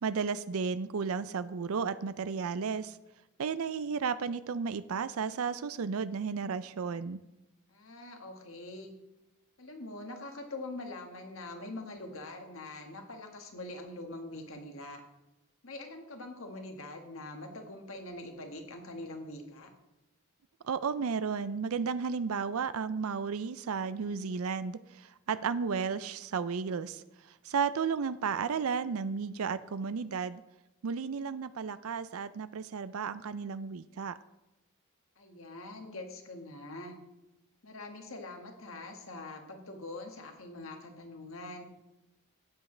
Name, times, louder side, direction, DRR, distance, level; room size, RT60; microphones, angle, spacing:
voice 1, 0.0-3.0 3.4-7.2 20.6-27.0 27.4-30.4 30.8-34.2, right 5 dB, 70° right, 14 dB, 0.4 m, -33 dB
voice 2, 7.7-8.9 9.6-15.0 15.6-19.7 35.2-37.0 37.6-41.6, left 2 dB, 60° left, 3 dB, 1.6 m, -44 dB
13.0 x 9.4 x 3.3 m, 0.95 s
head